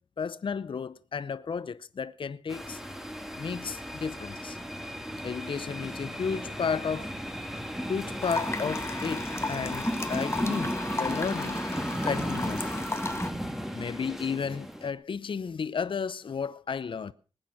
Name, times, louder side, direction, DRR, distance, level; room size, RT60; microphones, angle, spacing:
voice 1, 0.0-2.8 3.4-4.6 5.2-7.1 7.9-11.6 12.0-12.8 13.7-17.1, left 6 dB, 60° left, 0.7 m, -33 dB
sound 1, 2.5-14.9, equal, 5° right, 2.1 m, -35 dB
sound 2, 8.2-13.3, left 2 dB, 25° left, 1.4 m, -35 dB
20.0 x 9.1 x 5.8 m
wide cardioid pair, 105°, 10 cm